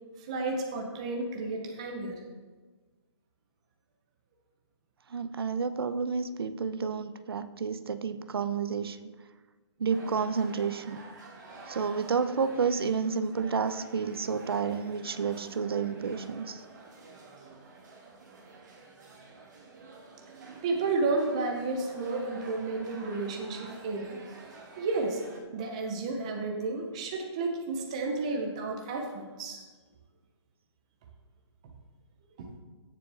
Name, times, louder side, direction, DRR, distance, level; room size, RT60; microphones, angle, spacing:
voice 1, 0.3-2.2 20.6-24.2 24.8-25.2 25.5-29.6 32.4-32.5, right 3 dB, 15° right, 1 dB, 0.6 m, -32 dB
voice 2, 5.1-9.0 9.8-11.0 11.7-16.6, right 5 dB, 55° right, 12 dB, 0.7 m, -30 dB
sound 1, 9.9-25.4, right 3 dB, 40° right, 1.7 m, -49 dB
16.0 x 7.1 x 3.4 m, 1.4 s
hypercardioid pair, 180°, 15 cm